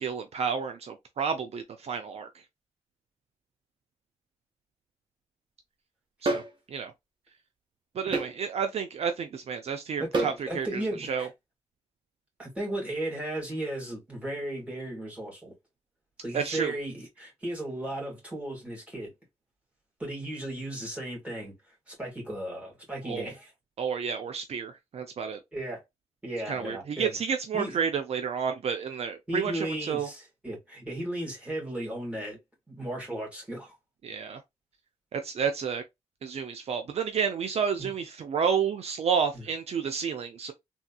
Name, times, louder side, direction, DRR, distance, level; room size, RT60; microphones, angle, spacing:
voice 1, 0.0-2.3 6.2-6.4 6.7-6.9 7.9-11.3 16.3-16.7 23.0-23.3 23.8-25.4 26.5-30.1 34.0-34.4 35.1-35.8 36.2-40.5, right 6 dB, 60° right, 0.5 m, -30 dB
sound 1, 6.2-6.5 8.1-8.3 10.1-10.4, right 2 dB, 45° right, 0.8 m, -27 dB
voice 2, 10.0-11.3 12.4-15.5 16.2-19.1 20.0-21.5 21.9-23.5 25.5-25.8 26.2-27.2 27.5-27.8 29.3-32.4 32.7-33.7 37.8-37.9 39.3-39.4, right 1 dB, 10° right, 1.9 m, -35 dB
3.4 x 2.8 x 2.3 m
wide cardioid pair, 135°, 12 cm